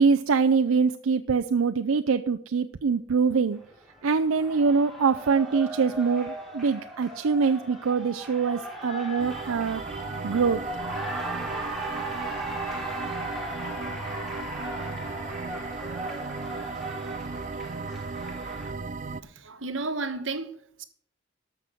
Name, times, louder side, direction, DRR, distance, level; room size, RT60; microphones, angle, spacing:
voice 1, 0.0-3.6 4.0-9.8 10.2-10.6, right 5 dB, 90° right, 0.5 m, -24 dB
Cheering, 3.5-18.7, right 1 dB, ahead, 2.2 m, -37 dB
sound 1, 9.2-19.2, right 4 dB, 35° right, 0.4 m, -36 dB
voice 2, 19.2-20.8, right 3 dB, 70° right, 1.2 m, -33 dB
13.0 x 6.0 x 7.6 m
head